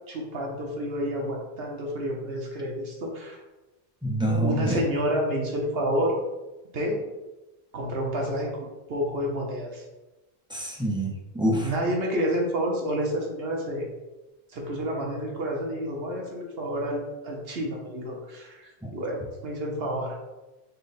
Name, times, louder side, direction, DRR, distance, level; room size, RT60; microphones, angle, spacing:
voice 1, 0.1-3.4 4.4-6.1 6.7-7.0 7.7-8.5 8.9-9.8 11.6-13.9 14.5-20.2, equal, 75° right, -1 dB, 1.0 m, -29 dB
voice 2, 4.0-4.8 10.5-11.7 18.8-18.9, right 1 dB, 5° right, -1 dB, 0.5 m, -26 dB
5.4 x 2.1 x 4.0 m, 1.1 s
omnidirectional pair, 1.0 m